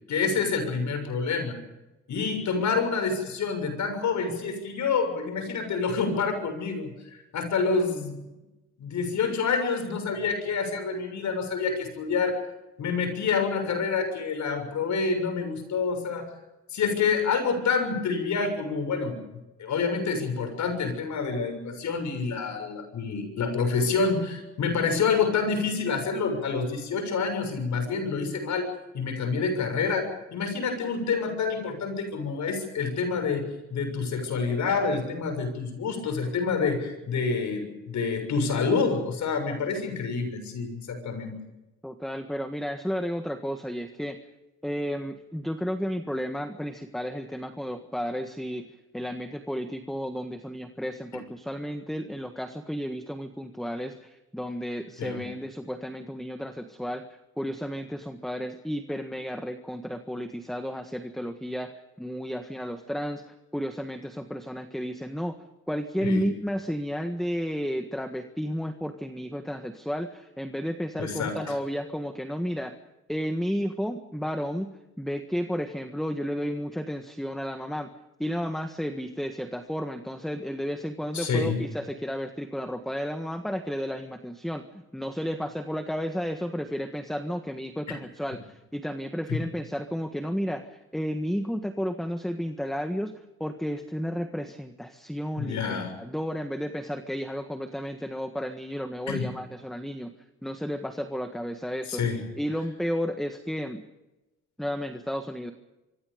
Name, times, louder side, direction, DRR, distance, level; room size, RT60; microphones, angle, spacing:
voice 1, 0.1-1.6 2.1-6.9 7.3-8.2 8.8-12.4 12.8-16.3 16.7-19.2 19.6-33.5 33.7-41.4 55.0-55.2 66.0-66.3 71.0-71.6 81.1-81.6 87.9-88.0 89.3-89.4 95.4-95.9 99.1-99.3 101.9-102.2, left 5 dB, 70° left, 7 dB, 6.9 m, -27 dB
voice 2, 41.8-44.2 44.6-65.4 65.7-72.7 73.1-74.7 75.0-77.9 78.2-93.1 93.4-100.1 100.4-102.0 102.4-103.8 104.6-105.5, equal, ahead, 7 dB, 1.6 m, -32 dB
25.5 x 24.5 x 5.2 m, 1.0 s
cardioid pair, 90°, 30 cm